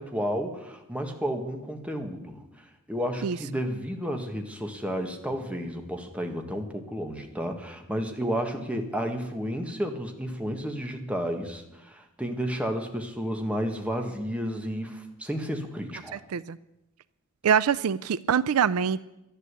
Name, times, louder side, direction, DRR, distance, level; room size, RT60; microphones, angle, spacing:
voice 1, 0.0-2.4 2.9-16.2, equal, 5° right, 3 dB, 1.7 m, -32 dB
voice 2, 16.1-16.6 17.4-19.0, right 7 dB, 75° right, 17 dB, 0.4 m, -24 dB
12.0 x 11.5 x 8.3 m, 0.92 s
head